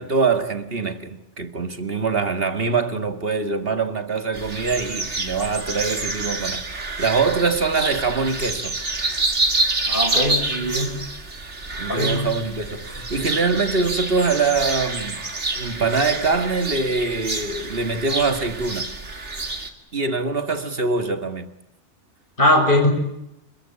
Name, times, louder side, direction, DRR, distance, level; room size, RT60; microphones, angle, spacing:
voice 1, 0.0-6.6 7.0-8.8 11.7-15.2 15.5-18.9 19.9-21.5, right 4 dB, 55° right, 2.2 m, -23 dB
sound 1, 4.3-19.7, right 2 dB, 70° right, 3.2 m, -27 dB
voice 2, 9.9-10.9 11.9-12.3 22.4-22.9, left 1 dB, 45° left, 7.1 m, -20 dB
27.5 x 22.0 x 8.9 m
omnidirectional pair, 1.2 m